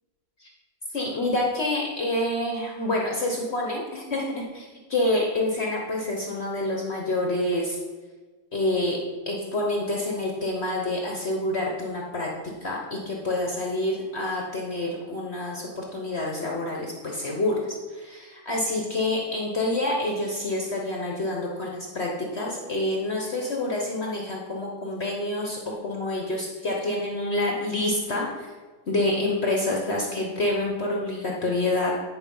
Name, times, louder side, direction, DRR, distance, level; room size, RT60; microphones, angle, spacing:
voice 1, 0.9-7.8 8.5-9.0 9.3-12.3 12.6-28.5 28.9-31.9, left 1 dB, 45° left, -1 dB, 0.9 m, -27 dB
9.7 x 4.6 x 5.3 m, 1.4 s
omnidirectional pair, 2.1 m